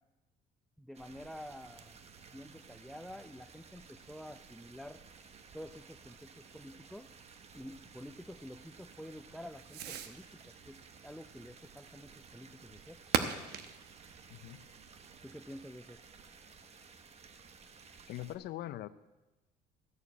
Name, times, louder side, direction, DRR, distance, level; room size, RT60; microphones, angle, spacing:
voice 1, 0.8-2.0 2.3-5.0 5.5-7.1 7.5-13.0 15.2-16.0, equal, ahead, 9 dB, 0.5 m, -49 dB
sound 1, 0.9-18.4, right 5 dB, 40° right, 1.0 m, -56 dB
Fireworks, 1.1-15.7, right 9 dB, 80° right, 0.9 m, -44 dB
voice 2, 14.3-14.6 18.1-18.9, left 14 dB, 70° left, 14 dB, 0.6 m, -42 dB
14.0 x 6.7 x 8.3 m, 1.1 s
cardioid pair, 110°, 17 cm